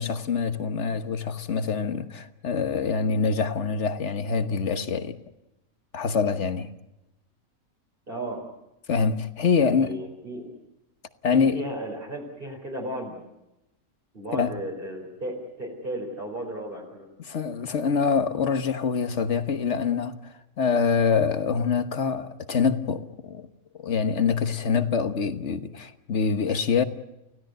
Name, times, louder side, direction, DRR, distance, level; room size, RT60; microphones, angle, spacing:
voice 1, 0.0-5.2 5.9-6.7 8.9-9.9 11.2-11.6 14.3-14.5 17.2-23.5 23.8-26.8, left 5 dB, 55° left, 1.5 m, -25 dB
voice 2, 8.1-8.4 9.6-10.5 11.3-13.1 14.1-17.1, right 1 dB, 40° right, 4.7 m, -35 dB
29.5 x 16.5 x 7.9 m
omnidirectional pair, 1.4 m